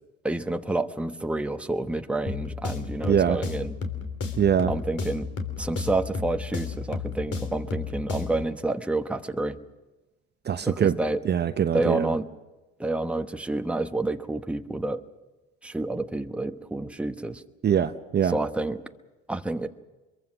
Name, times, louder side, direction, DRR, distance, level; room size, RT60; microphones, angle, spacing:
voice 1, 0.2-3.7 4.7-5.3 5.6-9.6 10.7-11.2 11.7-12.2 12.8-15.0 15.6-17.4 18.2-18.8 19.3-19.7, right 2 dB, 5° right, 1.1 m, -29 dB
sound 1, 2.3-8.5, left 5 dB, 45° left, 3.3 m, -33 dB
voice 2, 4.4-4.7 10.4-11.0 11.2-12.1 17.6-18.4, right 8 dB, 30° right, 0.9 m, -23 dB
24.0 x 22.5 x 6.2 m
hypercardioid pair, 75°, 32 cm